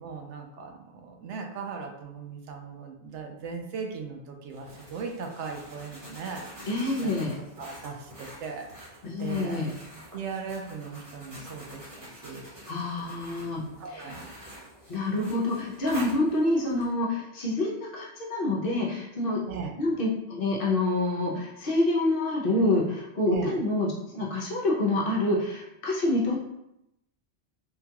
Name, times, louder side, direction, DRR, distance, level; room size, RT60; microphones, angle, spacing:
voice 1, 0.0-7.1 7.6-9.6 10.1-12.4 13.8-14.3 19.5-19.7 23.3-23.6, right 5 dB, 80° right, 3 dB, 0.9 m, -38 dB
sound 1, 4.5-16.9, equal, 30° right, 1.1 m, -46 dB
voice 2, 6.7-7.4 9.0-9.7 12.7-14.2 14.9-19.4 19.8-26.4, left 2 dB, 55° left, -4 dB, 0.9 m, -27 dB
3.7 x 2.3 x 2.8 m, 0.85 s
omnidirectional pair, 1.2 m